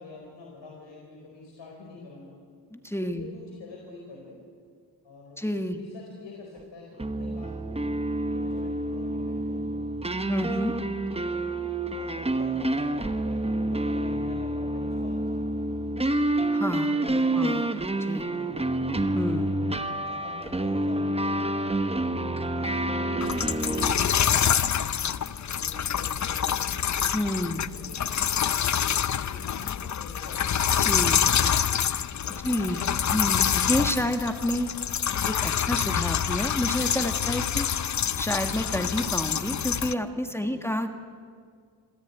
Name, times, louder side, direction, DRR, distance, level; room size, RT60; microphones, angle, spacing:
voice 1, 0.0-2.3 3.0-4.4 5.0-5.4 5.8-7.8 8.3-9.6 11.1-11.4 11.9-15.7 16.9-17.4 18.2-18.9 20.0-21.5 22.5-24.8 25.4-26.8 27.5-28.8 29.2-30.5 32.2-33.3 40.3-40.6, left 3 dB, 80° left, -1 dB, 4.4 m, -46 dB
voice 2, 2.7-3.3 5.4-5.8 10.3-10.7 16.5-16.9 17.3-18.3 19.1-19.8 27.1-27.7 30.8-31.6 32.4-32.8 33.1-34.7 35.3-37.7 38.2-40.9, equal, 5° left, 6 dB, 1.7 m, -29 dB
sound 1, 7.0-23.9, right 1 dB, 15° right, 1.1 m, -28 dB
sound 2, 23.2-39.9, left 8 dB, 40° left, 0.6 m, -26 dB
27.0 x 14.0 x 9.3 m, 2.1 s
wide cardioid pair, 105°, 43 cm